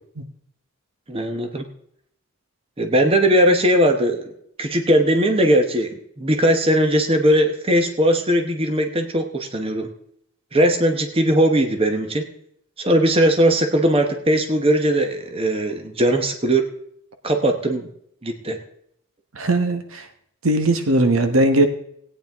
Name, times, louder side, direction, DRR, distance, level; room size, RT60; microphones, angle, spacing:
voice 1, 1.1-1.6 2.8-4.3 4.6-9.9 10.5-12.3 12.8-16.6 17.2-17.9 18.2-18.6, right 1 dB, 25° right, 5 dB, 1.0 m, -19 dB
voice 2, 19.3-20.1 20.4-21.7, right 1 dB, 70° right, 8 dB, 1.0 m, -19 dB
17.5 x 9.1 x 3.5 m, 0.71 s
head